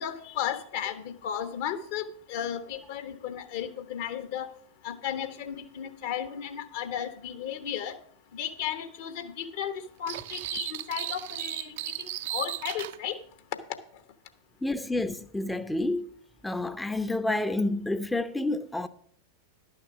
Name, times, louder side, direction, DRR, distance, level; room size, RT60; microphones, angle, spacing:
voice 1, 0.0-4.5 4.8-8.0 8.3-13.2, left 9 dB, 50° left, 0.9 m, -34 dB
sound 1, 10.1-13.0, right 14 dB, 55° right, 0.4 m, -35 dB
voice 2, 14.6-16.1 16.4-18.9, left 2 dB, 5° left, 0.5 m, -29 dB
11.5 x 6.5 x 6.0 m
figure-of-eight pair, 90°, 0 cm